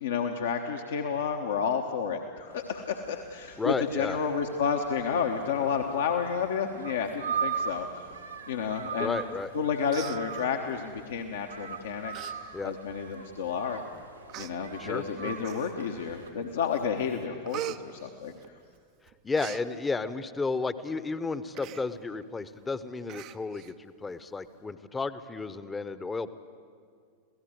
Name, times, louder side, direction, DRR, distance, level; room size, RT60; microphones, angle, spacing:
voice 1, 0.0-8.1 8.5-9.2 9.5-12.3 12.6-13.8 14.4-18.3, left 6 dB, 60° left, 3 dB, 1.2 m, -31 dB
sound 1, 2.5-16.3, right 6 dB, 80° right, 2.1 m, -40 dB
voice 2, 3.6-4.2 9.0-9.5 12.5-12.7 14.8-15.3 19.2-26.3, left 4 dB, 15° left, 14 dB, 0.9 m, -33 dB
Human voice, 9.4-9.6 9.9-10.8 11.5-11.7 12.1-12.3 12.7-12.8 13.6-13.7 14.3-14.5 15.4-16.0 16.4-16.8 17.1-18.8 19.1-19.6 21.5-21.8 22.2-22.3 22.6-22.7 23.1-23.7 24.1-24.2, right 13 dB, 40° right, 0.7 m, -41 dB
27.0 x 17.0 x 7.9 m, 2.2 s
figure-of-eight pair, 90°, 0 cm